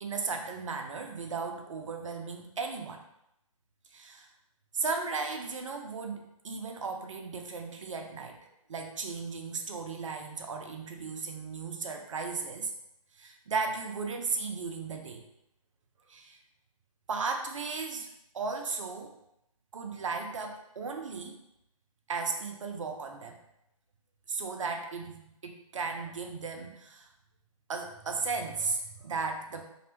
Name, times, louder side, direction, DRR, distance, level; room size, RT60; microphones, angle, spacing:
voice 1, 0.0-3.0 3.9-4.3 4.7-8.4 8.7-12.7 13.1-15.2 16.1-16.4 17.1-18.1 18.3-19.1 19.7-21.4 22.1-23.4 24.3-27.1 27.7-29.6, right 4 dB, 60° right, 3 dB, 0.5 m, -35 dB
2.6 x 2.1 x 2.9 m, 0.81 s
figure-of-eight pair, 145°, 18 cm